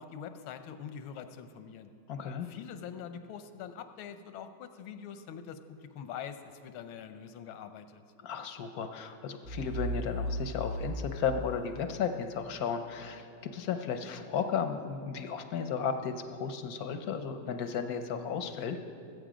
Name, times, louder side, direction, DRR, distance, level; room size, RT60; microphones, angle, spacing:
voice 1, 0.0-1.9 2.4-8.0, left 8 dB, 90° left, 9 dB, 1.6 m, -44 dB
voice 2, 2.1-2.5 8.2-18.8, left 6 dB, 65° left, 7 dB, 1.0 m, -34 dB
sound 1, 9.4-12.3, equal, 55° right, 1.4 m, -36 dB
20.5 x 8.2 x 5.0 m, 2.4 s
omnidirectional pair, 2.2 m